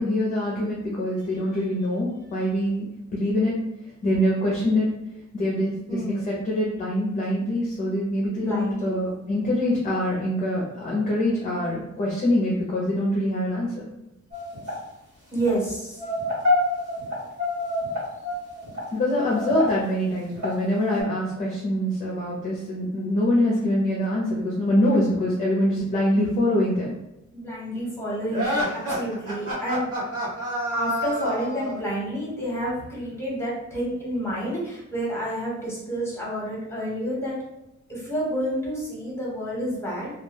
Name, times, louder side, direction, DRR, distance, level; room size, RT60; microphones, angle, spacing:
voice 1, 0.0-2.8 3.1-3.5 4.0-4.9 5.3-13.7 18.9-26.9, left 1 dB, 25° left, -4 dB, 0.5 m, -24 dB
voice 2, 5.9-6.4 8.4-9.1 15.3-16.0 27.3-29.9 30.7-37.3 37.9-40.1, right 1 dB, 10° left, -5 dB, 0.9 m, -29 dB
sound 1, 14.3-14.7 15.3-15.6 16.0-18.8 19.3-19.7 20.3-20.5 20.9-21.0, left 2 dB, 75° right, 1.3 m, -26 dB
sound 2, 28.3-31.9, equal, 55° right, 1.0 m, -28 dB
2.3 x 2.1 x 3.2 m, 0.92 s
wide cardioid pair, 155°, 30 cm